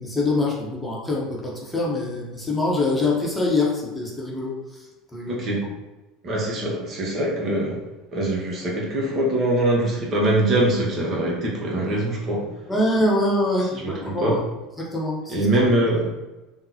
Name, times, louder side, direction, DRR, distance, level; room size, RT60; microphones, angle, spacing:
voice 1, 0.0-4.5 5.1-5.4 12.7-14.4 14.8-15.5, left 2 dB, 10° left, -4 dB, 0.8 m, -24 dB
voice 2, 5.3-5.6 6.2-7.8 8.1-12.5 13.8-14.4 15.3-16.1, right 1 dB, 45° right, -2 dB, 0.8 m, -23 dB
3.7 x 2.0 x 2.8 m, 1.1 s
hypercardioid pair, 70°, 0 cm